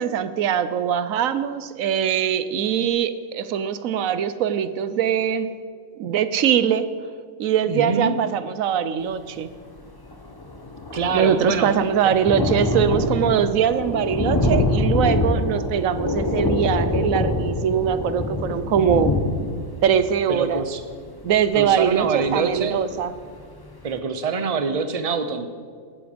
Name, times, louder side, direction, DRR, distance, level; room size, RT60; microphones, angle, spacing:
voice 1, 0.0-5.5 6.0-6.9 7.4-9.5 11.1-19.1 19.5-20.6 21.2-23.1, right 8 dB, 90° right, 13 dB, 1.1 m, -22 dB
voice 2, 7.7-8.2 10.9-11.7 12.0-12.1 20.3-20.8 21.5-22.8 23.8-25.5, right 4 dB, 30° right, 9 dB, 0.9 m, -25 dB
Thunder, 9.8-9.9 10.1-22.7 23.2-23.3 23.6-23.7, left 2 dB, 15° left, 1.4 m, -25 dB
16.0 x 13.0 x 5.2 m, 2.1 s
omnidirectional pair, 1.4 m